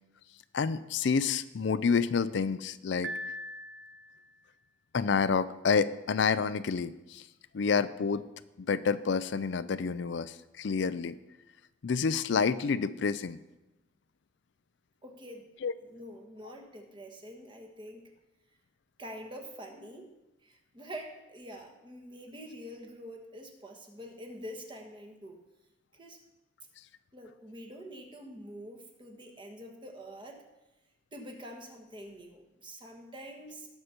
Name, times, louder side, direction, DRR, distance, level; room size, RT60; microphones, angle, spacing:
voice 1, 0.5-3.1 4.9-7.3 7.5-8.2 8.7-11.2 11.8-13.4 15.6-15.7, left 5 dB, 65° left, 14 dB, 0.4 m, -28 dB
Piano, 3.0-4.3, equal, 65° right, 0.7 m, -40 dB
voice 2, 15.0-18.1 19.0-20.2 20.4-25.4 25.9-26.2 27.1-30.4 31.1-33.7, equal, 25° right, 2 dB, 1.4 m, -46 dB
18.0 x 6.7 x 4.4 m, 0.99 s
head